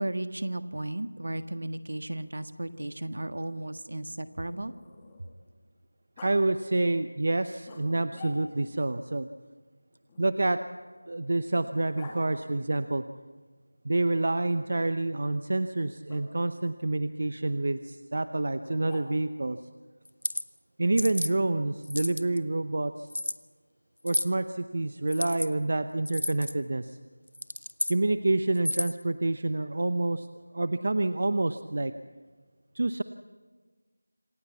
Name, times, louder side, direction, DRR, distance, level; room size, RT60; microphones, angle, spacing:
voice 1, 0.0-4.7, right 1 dB, 65° right, 11 dB, 1.6 m, -34 dB
Growling, 2.1-5.5 6.2-6.4 7.6-8.7 10.1-12.2 14.1-14.7 16.1-16.2 18.6-19.4, left 3 dB, 10° left, 2.2 m, -50 dB
voice 2, 6.2-9.3 10.2-10.6 11.1-13.0 13.8-19.6 20.8-23.1 24.0-27.0 27.9-30.3 30.5-31.9 32.7-33.0, right 2 dB, 45° right, 11 dB, 0.8 m, -28 dB
sound 1, 20.0-20.4 21.0-21.3 21.8-22.4 23.1-23.4 24.1-24.3 25.1-25.5 26.1-26.5 27.3-28.0 28.5-29.0, left 1 dB, 70° left, 1.1 m, -31 dB
27.0 x 16.0 x 8.4 m, 1.4 s
figure-of-eight pair, 175°, 0 cm